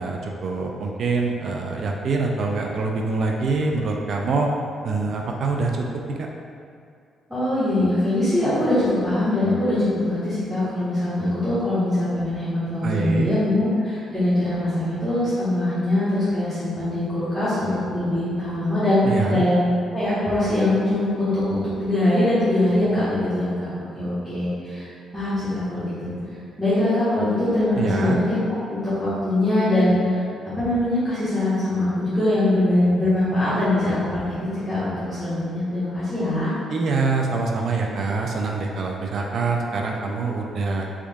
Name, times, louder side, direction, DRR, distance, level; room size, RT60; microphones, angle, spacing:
voice 1, 0.0-4.5 4.8-6.2 12.8-13.3 19.0-19.4 27.8-28.2 36.7-40.9, right 3 dB, 60° right, 0 dB, 0.3 m, -25 dB
voice 2, 7.3-26.1 26.6-28.4 28.7-30.2 30.5-36.5, left 1 dB, 5° right, -15 dB, 1.4 m, -22 dB
3.5 x 3.5 x 2.3 m, 2.3 s
cardioid pair, 90°, 0 cm